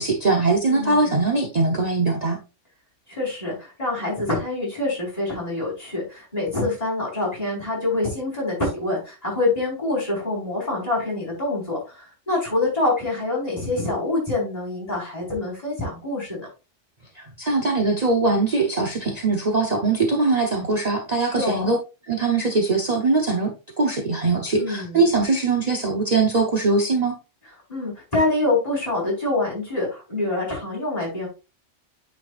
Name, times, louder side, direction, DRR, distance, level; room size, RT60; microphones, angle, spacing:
voice 1, 0.0-2.4 17.1-21.8 22.1-27.2, right 3 dB, 35° right, 2 dB, 1.0 m, -21 dB
voice 2, 0.6-1.1 3.1-16.5 21.2-21.7 24.5-25.0 27.7-31.3, left 2 dB, 30° left, -5 dB, 4.8 m, -26 dB
8.9 x 5.8 x 2.5 m, 0.29 s
omnidirectional pair, 1.3 m